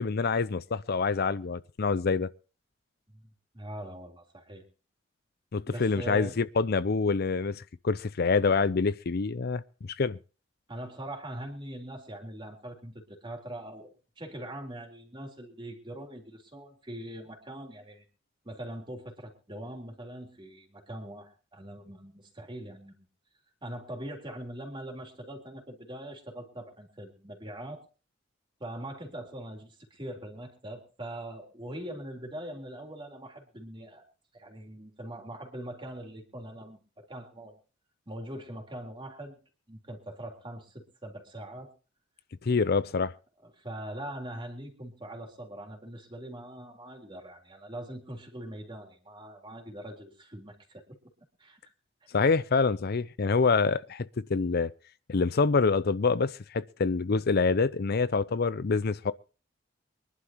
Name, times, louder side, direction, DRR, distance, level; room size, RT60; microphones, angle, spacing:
voice 1, 0.0-2.3 5.5-9.6 9.9-10.2 42.4-43.1 52.1-54.0 54.3-54.7 55.1-59.1, left 4 dB, 55° left, 0.6 m, -26 dB
voice 2, 3.1-4.6 5.7-6.4 10.7-13.9 14.2-18.0 18.4-23.1 23.6-27.8 28.6-34.0 34.3-37.6 38.1-39.3 39.7-41.7 43.4-50.8 51.4-51.6 52.0-52.1, right 1 dB, 25° right, 3.6 m, -42 dB
24.5 x 11.5 x 3.0 m
head